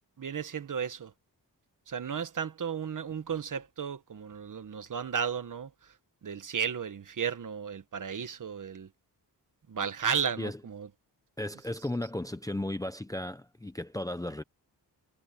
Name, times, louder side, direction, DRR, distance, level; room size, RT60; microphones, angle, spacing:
voice 1, 0.2-1.1 1.9-5.7 6.2-8.9 9.7-10.9, right 7 dB, 50° right, 1.4 m, -34 dB
voice 2, 11.4-14.4, left 1 dB, 10° left, 0.7 m, -35 dB
wide cardioid pair, 175°, 41 cm